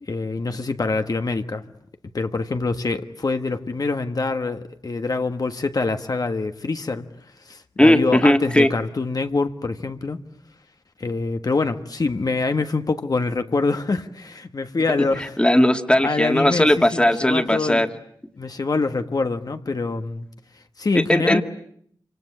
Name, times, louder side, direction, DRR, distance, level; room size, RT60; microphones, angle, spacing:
voice 1, 0.1-1.6 2.1-7.0 7.4-10.2 11.0-15.4 16.0-17.8 18.4-20.3 20.8-21.4, left 3 dB, 50° left, 1.4 m, -25 dB
voice 2, 7.8-8.7 15.4-17.9 20.9-21.4, left 1 dB, 10° left, 2.0 m, -17 dB
27.0 x 25.5 x 8.6 m
wide cardioid pair, 105°, 8 cm